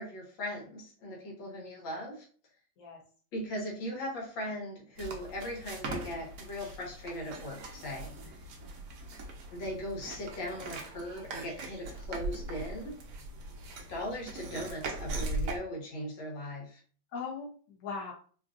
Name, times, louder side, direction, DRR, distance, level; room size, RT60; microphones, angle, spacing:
voice 1, 0.0-2.2 3.3-8.4 9.5-12.9 13.9-16.8, equal, 75° left, -2 dB, 1.8 m, -39 dB
voice 2, 1.4-1.8 2.8-3.0 8.4-8.5 13.5-13.7 17.1-18.1, left 5 dB, 60° left, -2 dB, 1.2 m, -41 dB
sound 1, 5.0-15.6, right 2 dB, 65° right, 1.0 m, -40 dB
3.8 x 2.5 x 2.4 m, 0.43 s
omnidirectional pair, 2.1 m